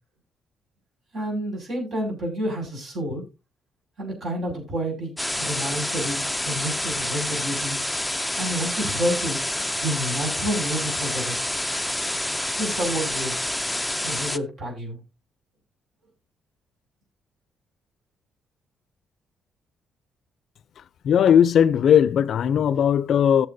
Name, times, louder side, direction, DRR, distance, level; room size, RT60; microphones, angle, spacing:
voice 1, 1.1-3.2 4.0-7.8 8.4-9.4 9.8-11.5 12.6-13.5 14.0-15.0, equal, 60° right, 6.0 m, -29 dB
sound 1, 5.2-14.4, left 1 dB, 5° left, 0.4 m, -28 dB
voice 2, 21.0-23.5, left 9 dB, 65° left, 0.4 m, -18 dB
15.0 x 7.1 x 2.6 m
cardioid pair, 90°, 0 cm